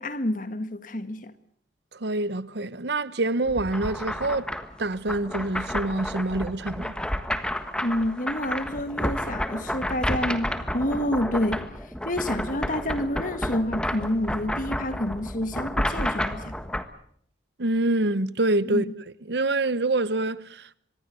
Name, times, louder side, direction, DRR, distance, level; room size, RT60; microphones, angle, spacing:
voice 1, 0.0-1.3 7.8-11.7 12.1-16.5 18.7-18.9, left 1 dB, 45° left, 1.8 m, -28 dB
voice 2, 1.9-4.5 4.8-7.0 17.6-18.8 19.3-20.8, right 2 dB, 65° right, 0.9 m, -26 dB
sound 1, 3.5-16.8, left 1 dB, 5° left, 1.5 m, -31 dB
25.0 x 21.0 x 7.6 m
head